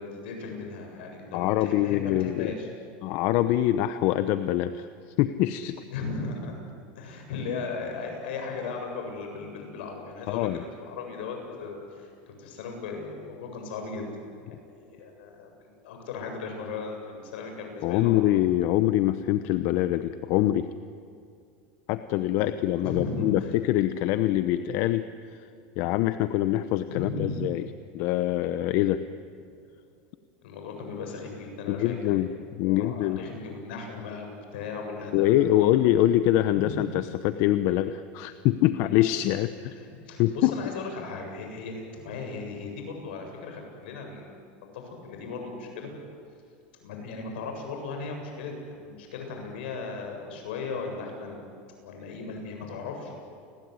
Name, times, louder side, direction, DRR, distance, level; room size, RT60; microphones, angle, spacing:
voice 1, 0.0-2.7 5.9-6.6 7.0-14.0 14.6-18.2 22.3-23.5 26.9-27.3 30.4-32.3 32.6-35.7 36.5-36.9 39.6-44.3 44.7-45.9 46.8-51.5 51.8-53.1, left 4 dB, 85° left, 3 dB, 7.8 m, -37 dB
voice 2, 1.3-2.5 3.0-4.9 5.2-5.8 10.3-10.6 17.8-20.7 21.9-25.4 25.8-27.7 27.9-29.0 31.7-32.3 32.6-33.2 35.1-39.8 40.2-40.5, left 14 dB, 60° left, 11 dB, 1.0 m, -24 dB
29.0 x 20.5 x 9.8 m, 2.4 s
supercardioid pair, 135°, 6 cm